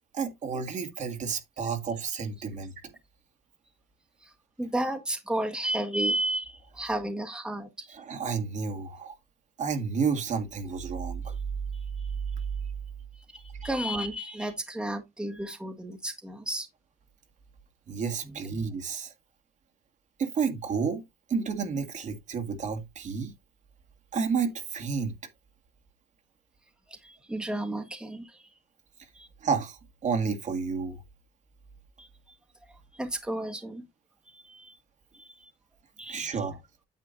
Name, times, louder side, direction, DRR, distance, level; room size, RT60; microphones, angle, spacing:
voice 1, 0.1-2.7 7.9-9.2 9.6-11.4 17.9-19.1 20.2-21.0 21.3-23.3 24.1-25.1 29.4-31.0 36.1-36.6, right 5 dB, 45° right, 1.7 m, -31 dB
voice 2, 4.6-7.9 11.7-12.1 13.1-16.7 26.9-28.4 29.1-29.3 32.0-32.1 32.9-33.8 34.3-34.8 35.2-35.3 36.0-36.4, right 1 dB, 5° right, 1.4 m, -33 dB
9.4 x 7.4 x 2.6 m
cardioid pair, 110°, 17 cm